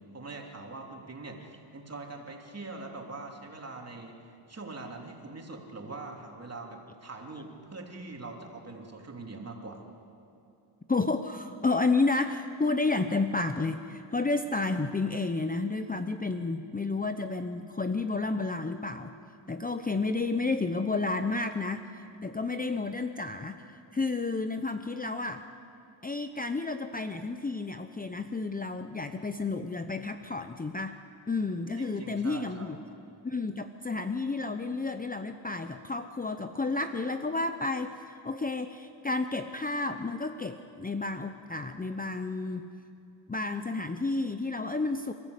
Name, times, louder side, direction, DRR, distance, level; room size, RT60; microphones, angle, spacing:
voice 1, 0.1-9.8 31.8-32.8, right 3 dB, 30° right, 1 dB, 3.3 m, -43 dB
voice 2, 10.9-19.2 19.5-25.4 26.0-31.0 31.3-32.8 33.2-42.6 43.3-45.1, left 3 dB, 20° left, 8 dB, 0.8 m, -31 dB
27.0 x 13.5 x 8.2 m, 2.6 s
cardioid pair, 80°, 48 cm